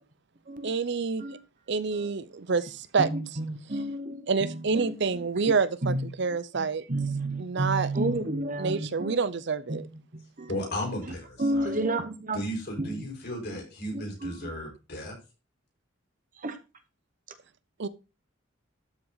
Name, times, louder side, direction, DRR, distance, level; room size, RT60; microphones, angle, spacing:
voice 1, 0.6-1.2 1.7-3.1 3.7-3.8 4.3-6.8 7.4-7.9 8.6-9.9 17.8-17.9, right 4 dB, 60° right, 0.7 m, -28 dB
voice 2, 3.0-4.9 5.5-6.1 6.5-9.2 9.7-9.8 10.1-10.5 11.4-12.4 12.8-12.9 13.9-14.5 16.4-16.6, right 2 dB, 45° right, 1.2 m, -31 dB
voice 3, 10.2-11.8 12.3-15.2, equal, 55° left, 4.8 m, -35 dB
12.5 x 5.9 x 4.0 m
head